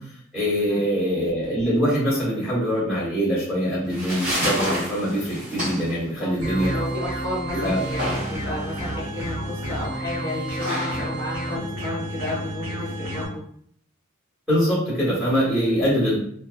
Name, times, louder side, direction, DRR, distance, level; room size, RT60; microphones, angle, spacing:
voice 1, 0.0-6.7 7.5-7.8 14.5-16.2, equal, 5° right, -8 dB, 1.0 m, -23 dB
sound 1, 3.6-12.6, equal, 40° right, 1.1 m, -31 dB
sound 2, 6.4-13.3, right 1 dB, 90° right, 0.8 m, -30 dB
voice 2, 6.7-13.4, left 1 dB, 20° left, -9 dB, 1.1 m, -32 dB
2.6 x 2.1 x 2.3 m, 0.64 s
head